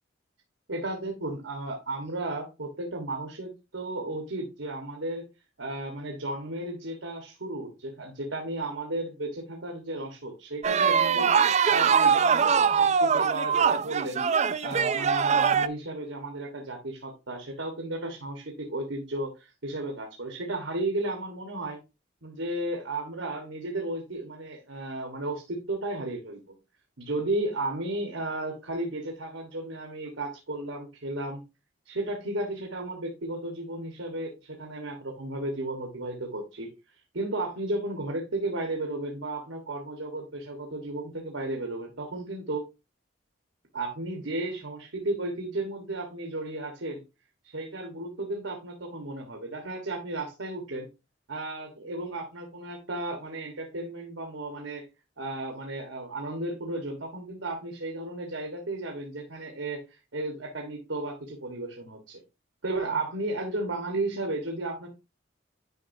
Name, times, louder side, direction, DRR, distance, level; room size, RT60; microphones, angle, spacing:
voice 1, 0.7-5.3 5.6-14.2 14.6-21.8 22.2-26.4 27.0-31.4 31.8-42.6 43.7-47.0 47.4-50.9 51.3-54.8 55.2-62.2 62.6-64.9, right 2 dB, 80° right, 2 dB, 1.4 m, -34 dB
sound 1, 10.6-15.7, right 6 dB, 35° right, 0.4 m, -22 dB
9.7 x 5.3 x 2.6 m, 0.27 s
head